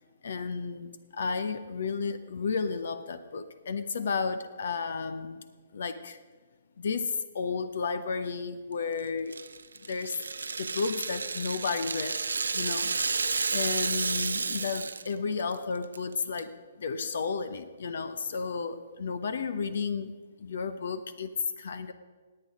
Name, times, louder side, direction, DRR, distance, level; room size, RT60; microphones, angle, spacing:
voice 1, 0.2-5.4 5.7-6.2 6.8-9.3 9.9-10.2 10.6-12.2 12.5-13.2 13.5-21.9, left 5 dB, 60° left, 12 dB, 0.8 m, -33 dB
Rattle (instrument), 9.3-15.1 15.4-15.6 15.9-16.4, right 4 dB, 75° right, 0.6 m, -31 dB
19.0 x 8.8 x 5.1 m, 1.4 s
figure-of-eight pair, 125°, 0 cm